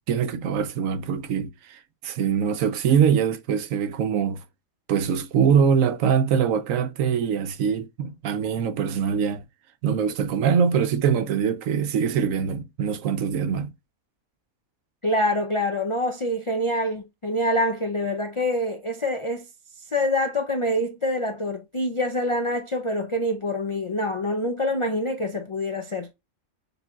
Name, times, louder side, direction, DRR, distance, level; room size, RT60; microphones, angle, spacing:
voice 1, 0.1-4.4 4.9-9.4 9.8-13.7, right 7 dB, 80° right, 1.0 m, -23 dB
voice 2, 15.0-19.5 19.8-26.1, left 1 dB, 55° left, 0.3 m, -26 dB
6.8 x 3.3 x 2.3 m
omnidirectional pair, 1.4 m